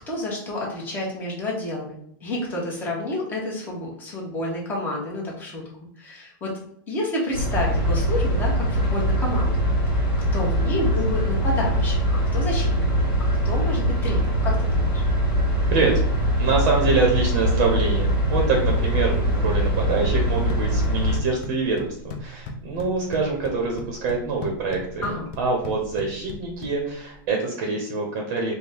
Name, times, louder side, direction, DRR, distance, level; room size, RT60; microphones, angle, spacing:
voice 1, 0.1-5.6 6.0-6.6 6.9-9.6 10.3-13.0 13.4-15.0 25.0-25.3, left 1 dB, 15° left, -3 dB, 1.1 m, -29 dB
sound 1, 7.3-21.2, equal, 10° right, 1.2 m, -22 dB
voice 2, 15.7-16.0 16.4-25.1 25.4-28.5, right 4 dB, 45° right, 1 dB, 0.8 m, -25 dB
sound 2, 20.3-27.3, left 2 dB, 35° left, 0.5 m, -39 dB
4.3 x 2.1 x 3.4 m, 0.68 s
supercardioid pair, 165°, 12 cm